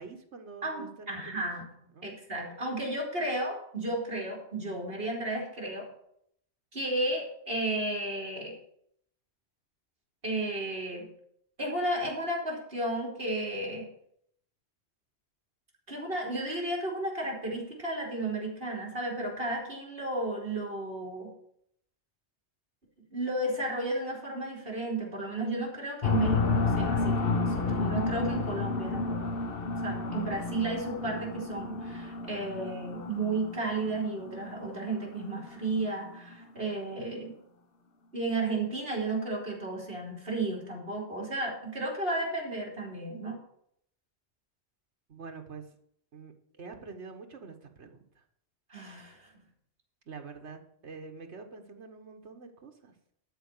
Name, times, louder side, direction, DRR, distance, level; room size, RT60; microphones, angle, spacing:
voice 1, 0.0-1.5 1.9-2.1 45.1-45.7 46.1-48.2 50.1-52.9, right 4 dB, 75° right, 5 dB, 1.7 m, -46 dB
voice 2, 0.6-1.7 2.0-5.9 6.7-8.5 10.2-11.1 11.6-13.9 15.9-21.3 23.1-29.5 29.8-37.3 38.1-43.4 48.7-49.2, right 2 dB, 55° right, 0 dB, 3.5 m, -33 dB
sound 1, 26.0-36.4, left 3 dB, 55° left, 1.1 m, -31 dB
12.5 x 4.9 x 8.3 m, 0.70 s
omnidirectional pair, 1.2 m